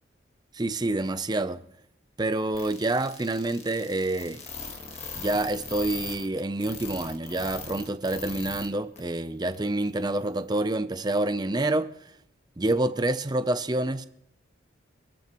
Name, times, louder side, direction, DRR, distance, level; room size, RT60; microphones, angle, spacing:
voice 1, 0.5-1.6 2.2-4.4 5.1-11.9 12.6-14.1, right 2 dB, 20° right, 0.6 m, -27 dB
sound 1, 2.5-8.7 9.0-9.1 9.5-9.6, left 5 dB, 35° left, 1.7 m, -39 dB
25.5 x 13.5 x 3.1 m
head